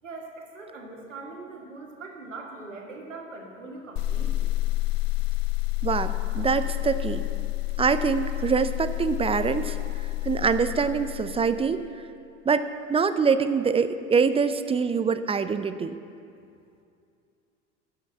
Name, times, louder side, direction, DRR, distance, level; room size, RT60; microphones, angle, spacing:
voice 1, 0.0-4.5, right 3 dB, 85° right, 0 dB, 1.9 m, -41 dB
sound 1, 4.0-11.8, left 18 dB, 45° left, 0.9 m, -29 dB
voice 2, 5.8-7.3 7.8-11.8 12.5-16.0, right 5 dB, 15° right, 11 dB, 0.5 m, -25 dB
13.5 x 5.7 x 8.9 m, 2.5 s
figure-of-eight pair, 70°, 37 cm